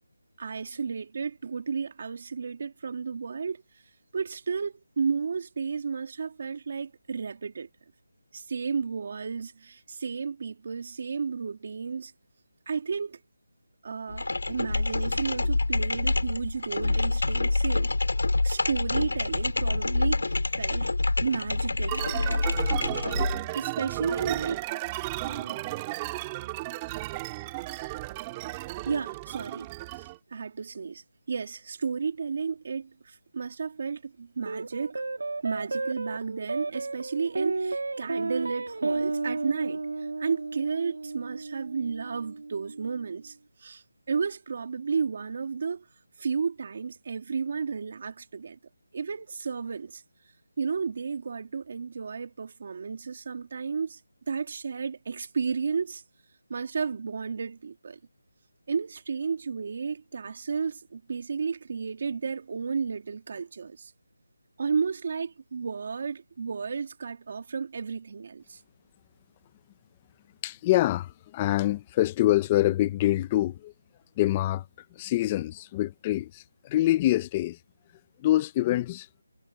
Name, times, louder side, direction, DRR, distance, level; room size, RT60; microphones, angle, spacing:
voice 1, 0.4-3.6 4.1-7.7 8.3-12.1 12.7-13.2 13.8-17.9 18.4-20.9 21.2-22.5 23.5-24.7 25.2-25.6 28.9-29.7 30.0-35.0 35.4-45.9 46.2-48.6 48.9-50.0 50.6-54.0 54.3-56.0 56.5-58.0 58.7-63.9 64.6-68.6, right 5 dB, 35° right, 3.3 m, -32 dB
sound 1, 14.1-23.4, left 2 dB, 80° left, 6.7 m, -27 dB
sound 2, 21.9-30.2, right 19 dB, 10° right, 2.1 m, -34 dB
sound 3, 34.5-43.1, right 3 dB, 65° right, 2.6 m, -33 dB
voice 2, 70.4-73.7 74.2-74.7 74.9-77.6 78.2-79.1, left 15 dB, 10° left, 0.7 m, -25 dB
figure-of-eight pair, 175°, 0 cm